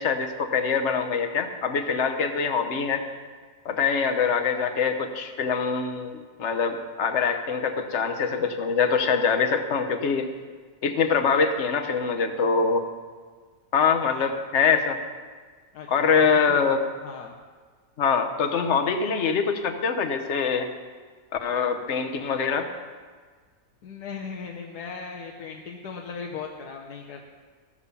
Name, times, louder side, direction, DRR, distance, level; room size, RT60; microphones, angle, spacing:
voice 1, 0.0-3.0 3.6-10.3 10.8-12.9 13.7-15.0 15.9-16.8 18.0-20.7 21.4-22.7, left 5 dB, 50° left, 6 dB, 1.2 m, -24 dB
voice 2, 15.7-16.7 17.0-17.3 23.8-27.2, left 5 dB, 80° left, 0 dB, 1.5 m, -38 dB
14.0 x 7.3 x 6.9 m, 1.5 s
omnidirectional pair, 1.7 m